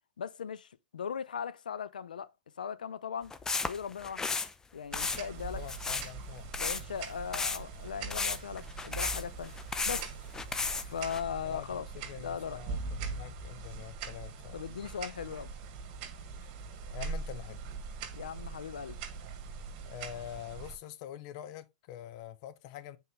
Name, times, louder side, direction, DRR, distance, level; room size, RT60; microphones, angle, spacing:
voice 1, 0.2-2.3 2.6-3.3 3.7-4.4 4.7-5.6 6.6-9.5 9.8-10.1 10.8-11.9 12.2-12.6 14.5-15.5 18.2-19.0, left 7 dB, 80° left, 0.7 m, -38 dB
sound 1, 3.3-4.5 4.9-5.2 5.7-6.1 6.5-6.8 7.3-7.6 8.1-10.0 10.3-11.2, left 4 dB, 10° left, 0.7 m, -33 dB
sound 2, 4.9-20.8, right 4 dB, 45° right, 2.1 m, -42 dB
voice 2, 5.5-6.5 11.4-14.6 16.9-17.6 19.9-23.0, left 12 dB, 50° left, 1.0 m, -45 dB
8.0 x 4.7 x 3.6 m
hypercardioid pair, 110°, 4 cm